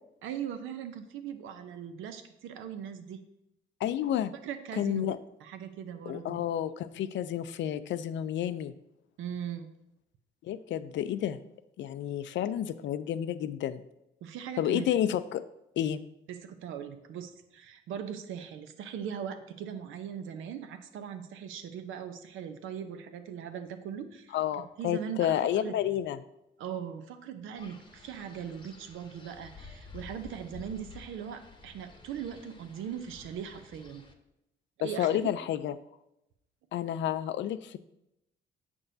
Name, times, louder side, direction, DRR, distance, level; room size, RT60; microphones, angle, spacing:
voice 1, 0.2-3.2 4.4-5.0 5.4-6.4 9.2-9.7 14.2-14.8 16.3-24.4 24.8-25.7 26.6-34.0 34.8-35.1, right 8 dB, 85° right, 8 dB, 0.7 m, -40 dB
voice 2, 3.8-4.3 4.8-5.2 6.1-8.7 10.4-11.4 11.8-13.8 14.6-15.4 15.8-16.0 24.3-26.2 34.8-35.7 36.7-37.8, left 11 dB, 70° left, 14 dB, 0.4 m, -30 dB
Wind, 27.6-34.1, left 4 dB, 25° left, 0.9 m, -51 dB
7.6 x 6.0 x 2.7 m, 0.85 s
cardioid pair, 90°, 20 cm